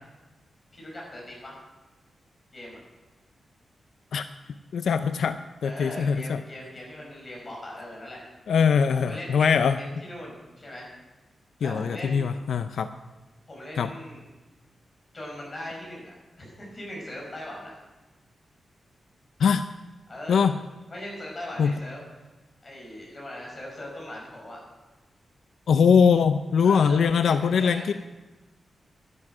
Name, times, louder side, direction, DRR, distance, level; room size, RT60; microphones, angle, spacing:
voice 1, 0.7-1.6 2.5-2.8 5.6-8.2 8.9-10.9 11.6-12.3 13.5-14.2 15.1-17.7 20.1-20.5 20.9-22.0 22.6-24.6 26.6-27.9, left 1 dB, 30° left, -3 dB, 5.6 m, -40 dB
voice 2, 4.7-6.4 8.5-9.8 11.6-12.9 13.8-13.9 19.4-19.6 20.3-20.6 21.6-21.7 25.7-27.9, left 6 dB, 80° left, 10 dB, 0.4 m, -22 dB
12.0 x 11.0 x 6.0 m, 1.2 s
wide cardioid pair, 150°, 0 cm